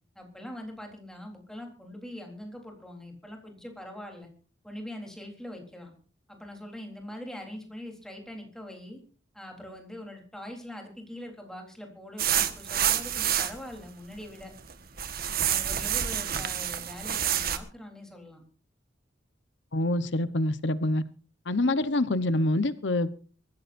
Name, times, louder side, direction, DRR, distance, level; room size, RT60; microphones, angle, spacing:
voice 1, 0.2-4.3 4.6-5.9 6.3-9.0 9.3-14.5 15.4-18.4, left 1 dB, 5° left, 3.8 m, -43 dB
sound 1, 12.2-13.6 14.2-14.7 15.0-17.6, right 10 dB, 50° right, 1.5 m, -28 dB
voice 2, 19.7-21.0 21.5-23.2, left 1 dB, 70° left, 1.0 m, -26 dB
24.0 x 15.0 x 2.7 m
head